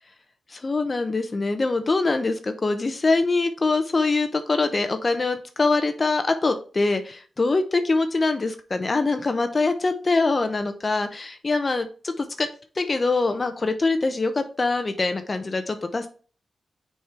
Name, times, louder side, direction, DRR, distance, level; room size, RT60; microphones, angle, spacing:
voice 1, 0.5-12.5 12.8-16.1, left 3 dB, 35° left, 8 dB, 0.7 m, -24 dB
6.5 x 4.4 x 3.4 m, 0.38 s
cardioid pair, 90°, 0 cm